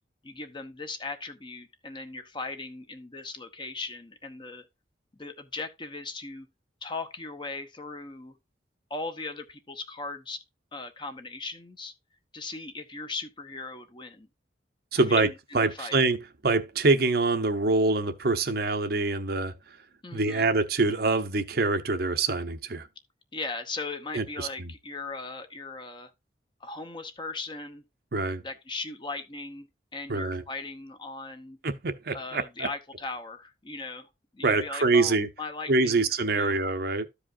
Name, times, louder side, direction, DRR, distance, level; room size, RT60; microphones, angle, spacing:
voice 1, 0.2-4.7 5.2-6.5 6.8-8.4 8.9-10.4 10.7-11.9 12.3-14.3 15.1-16.0 20.0-20.5 23.3-26.1 26.6-27.8 28.4-29.7 29.9-31.6 32.1-36.6, left 3 dB, 25° left, 0.9 m, -38 dB
voice 2, 14.9-15.3 15.5-19.5 20.1-22.9 24.1-24.7 28.1-28.4 30.1-30.4 31.6-32.7 34.4-35.3 35.7-37.1, right 3 dB, 60° right, 0.8 m, -25 dB
13.5 x 5.0 x 2.6 m
head